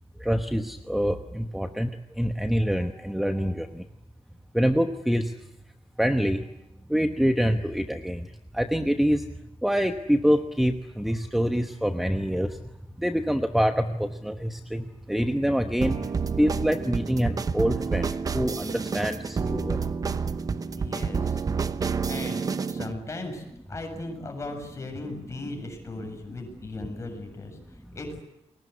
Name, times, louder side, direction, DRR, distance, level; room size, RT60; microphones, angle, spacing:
voice 1, 0.2-3.9 4.5-5.4 6.0-6.5 6.9-9.3 9.6-12.6 13.0-16.1 16.4-19.9, equal, ahead, 7 dB, 1.1 m, -26 dB
sound 1, 15.8-22.9, right 5 dB, 35° right, 1.0 m, -29 dB
voice 2, 20.8-21.4 22.0-22.4 22.7-28.2, left 2 dB, 25° left, 4 dB, 7.5 m, -37 dB
30.0 x 22.0 x 8.4 m, 0.89 s
wide cardioid pair, 175°, 11 cm